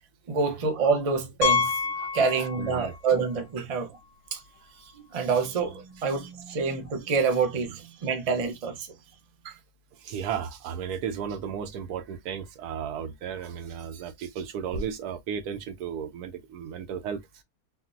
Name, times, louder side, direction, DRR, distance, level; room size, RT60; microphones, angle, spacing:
voice 1, 0.3-1.8 2.1-4.0 4.3-4.4 4.8-8.9, right 5 dB, 40° right, 0.5 m, -27 dB
Piano, 1.4-3.0 3.3-3.4 4.0-4.1 4.4-4.5 6.5-6.6, left 5 dB, 75° left, 1.4 m, -27 dB
voice 2, 2.4-2.9 3.6-3.7 9.4-9.6 10.0-17.4, right 7 dB, 80° right, 1.2 m, -34 dB
4.1 x 2.0 x 2.5 m
omnidirectional pair, 1.7 m